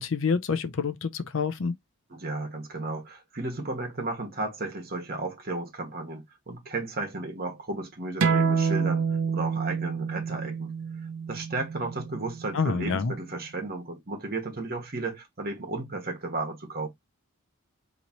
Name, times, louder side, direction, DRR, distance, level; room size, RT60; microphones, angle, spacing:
voice 1, 0.0-1.7 12.5-13.1, left 5 dB, 60° left, 0.5 m, -27 dB
voice 2, 2.1-10.7 11.3-16.9, right 2 dB, 40° right, 1.3 m, -34 dB
sound 1, 8.2-13.4, right 6 dB, 70° right, 0.6 m, -28 dB
4.0 x 3.0 x 2.9 m
head